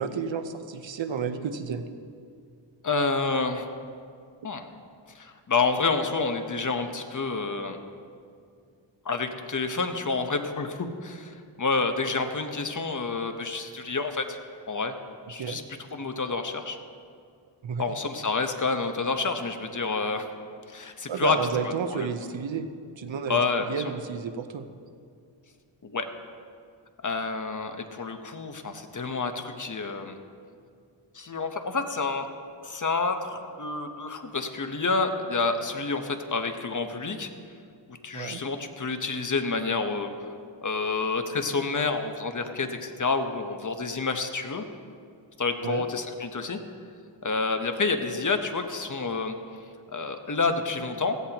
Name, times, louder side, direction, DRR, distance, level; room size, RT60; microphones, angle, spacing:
voice 1, 0.0-1.8 15.4-15.6 17.6-17.8 21.1-22.7 23.0-24.7 38.1-38.4 45.6-45.8, right 6 dB, 75° right, 9 dB, 0.9 m, -31 dB
voice 2, 2.8-3.7 4.4-4.7 5.1-7.8 9.0-14.4 14.7-14.9 15.3-15.6 15.9-16.8 17.8-20.3 20.7-21.4 21.7-22.1 23.3-23.7 25.8-26.1 27.0-30.2 31.1-32.3 32.6-37.3 37.9-40.1 40.6-44.6 45.4-46.6 47.2-49.4 49.9-51.2, left 4 dB, 40° left, 6 dB, 1.1 m, -28 dB
16.5 x 16.0 x 3.0 m, 2.3 s
wide cardioid pair, 80°, 46 cm